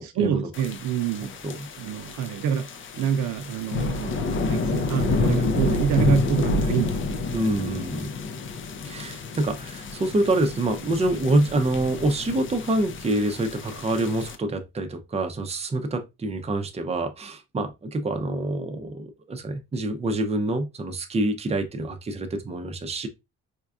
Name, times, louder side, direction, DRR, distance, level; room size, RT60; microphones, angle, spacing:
voice 1, 0.0-1.3 1.8-7.2, right 8 dB, 75° right, 0.5 m, -27 dB
sound 1, 0.5-14.4, left 3 dB, 40° left, 0.5 m, -29 dB
voice 2, 1.2-1.7 7.3-8.1 8.8-23.1, right 2 dB, 20° right, 0.6 m, -26 dB
4.4 x 2.3 x 2.4 m
cardioid pair, 90°, 30 cm